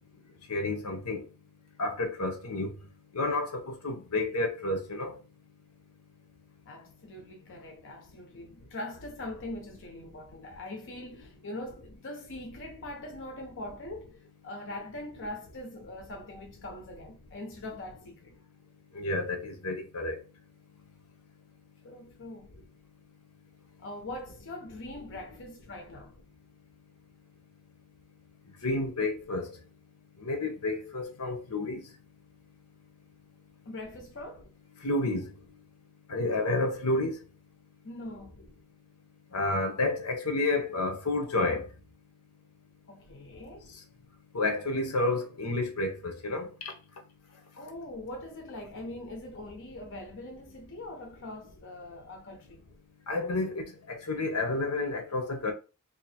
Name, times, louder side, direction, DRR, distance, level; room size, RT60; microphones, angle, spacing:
voice 1, 0.5-1.2 1.8-2.7 3.1-5.1 18.9-20.2 28.6-29.5 30.2-31.8 34.8-35.2 36.1-37.2 39.3-41.7 44.3-46.5 53.1-55.5, left 2 dB, 85° left, 1.0 m, -30 dB
voice 2, 6.7-14.2 14.4-18.3 21.8-22.5 23.8-26.2 33.7-34.5 37.8-38.5 42.9-43.7 47.5-52.6, left 1 dB, 60° left, 0.8 m, -42 dB
2.8 x 2.8 x 4.2 m
head